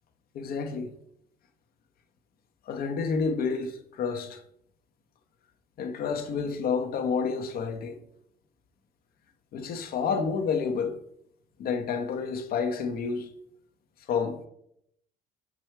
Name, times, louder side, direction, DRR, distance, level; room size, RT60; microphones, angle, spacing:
voice 1, 0.3-0.9 2.7-4.4 5.8-8.0 9.5-11.0 11.6-13.3 14.1-14.5, left 5 dB, 60° left, 1.0 m, -29 dB
6.2 x 6.1 x 4.5 m
cardioid pair, 110°, 17 cm